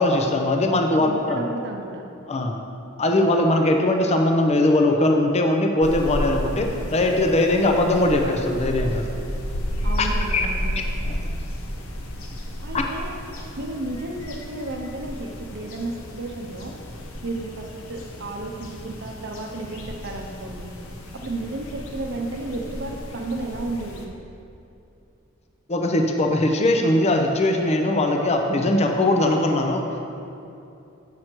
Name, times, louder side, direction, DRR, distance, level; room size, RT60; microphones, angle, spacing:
voice 1, 0.0-1.4 2.3-2.6 3.0-9.0 10.0-10.5 10.8-11.2 25.7-29.8, left 1 dB, 30° left, 3 dB, 0.6 m, -20 dB
voice 2, 0.9-2.0 9.8-10.8 12.6-13.2 13.6-16.8 17.2-20.7 21.1-24.1, right 2 dB, 55° right, 2 dB, 0.7 m, -33 dB
sound 1, 5.8-24.1, equal, 80° left, 0.9 m, -33 dB
7.8 x 6.0 x 4.4 m, 2.8 s
head